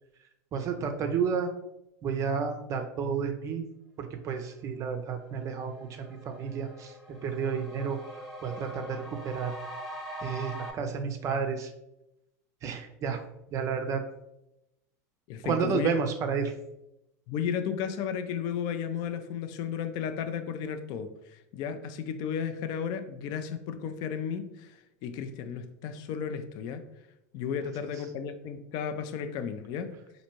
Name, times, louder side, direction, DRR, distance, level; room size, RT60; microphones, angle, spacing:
voice 1, 0.5-1.5 2.0-3.6 4.0-6.9 7.2-8.0 8.4-9.5 10.2-11.7 12.6-13.2 13.5-14.0 15.4-16.5, right 6 dB, 35° right, 6 dB, 0.4 m, -31 dB
sound 1, 4.9-5.0 5.4-10.7, equal, 5° right, 1.0 m, -43 dB
voice 2, 15.3-15.9 17.3-26.8 27.3-29.9, left 7 dB, 55° left, 9 dB, 0.4 m, -34 dB
4.1 x 2.6 x 2.9 m, 0.87 s
hypercardioid pair, 110°, 9 cm